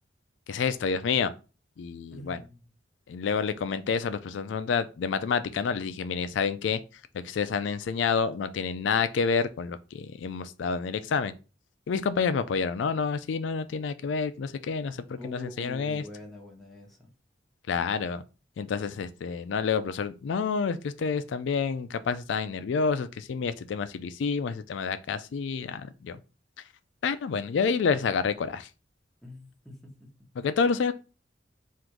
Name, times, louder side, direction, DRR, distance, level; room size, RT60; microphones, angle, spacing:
voice 1, 0.5-1.3 1.8-2.4 3.1-6.8 7.1-11.3 11.9-16.0 17.7-18.2 18.6-26.2 27.0-28.7 30.4-30.9, left 5 dB, 85° left, 0.4 m, -28 dB
voice 2, 2.1-2.6 15.2-17.1 29.2-30.1, left 1 dB, ahead, 1.1 m, -44 dB
3.7 x 2.5 x 4.5 m
head